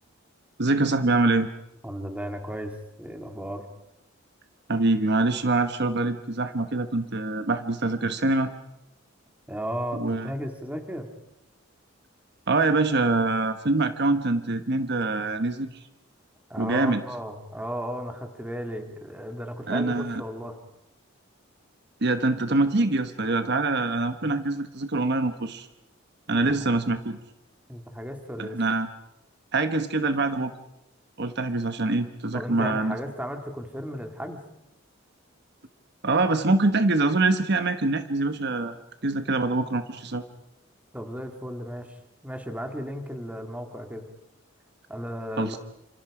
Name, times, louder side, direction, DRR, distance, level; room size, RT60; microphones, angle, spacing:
voice 1, 0.6-1.5 4.7-8.5 10.0-10.3 12.5-15.7 16.6-17.0 19.7-20.2 22.0-25.7 26.3-27.2 28.4-28.9 29.5-30.5 31.2-33.0 36.0-38.7 39.0-40.2 45.4-45.6, right 2 dB, 55° right, 9 dB, 1.2 m, -24 dB
voice 2, 1.8-3.7 9.5-11.1 16.5-20.6 27.7-28.6 32.3-34.4 40.9-42.0 42.2-44.0 44.9-45.6, equal, 10° right, 5 dB, 2.4 m, -35 dB
29.0 x 27.0 x 5.0 m, 0.86 s
head